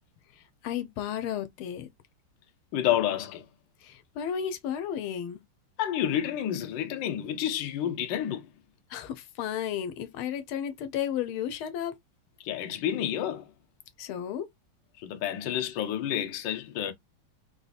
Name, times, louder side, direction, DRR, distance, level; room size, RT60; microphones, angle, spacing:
voice 1, 0.4-1.9 3.8-5.4 8.9-11.9 14.0-14.5, left 9 dB, 90° left, 1.6 m, -33 dB
voice 2, 2.7-3.5 5.8-8.5 12.4-13.5 15.0-16.9, left 10 dB, 70° left, 1.3 m, -29 dB
3.9 x 2.7 x 2.3 m
omnidirectional pair, 2.3 m